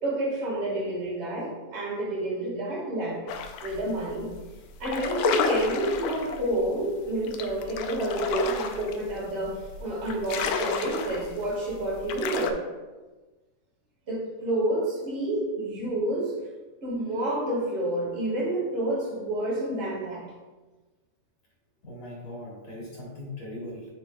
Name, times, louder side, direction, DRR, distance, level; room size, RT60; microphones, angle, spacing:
voice 1, 0.0-3.2 3.6-4.3 4.8-12.5 14.1-16.3 16.8-20.3, right 1 dB, 60° right, -4 dB, 0.7 m, -29 dB
sound 1, 3.3-3.8 4.1-4.4 4.7-12.5, left 6 dB, 80° left, 2.0 m, -30 dB
voice 2, 21.8-23.9, left 1 dB, 55° left, -5 dB, 2.1 m, -39 dB
10.5 x 4.8 x 2.3 m, 1.2 s
omnidirectional pair, 4.3 m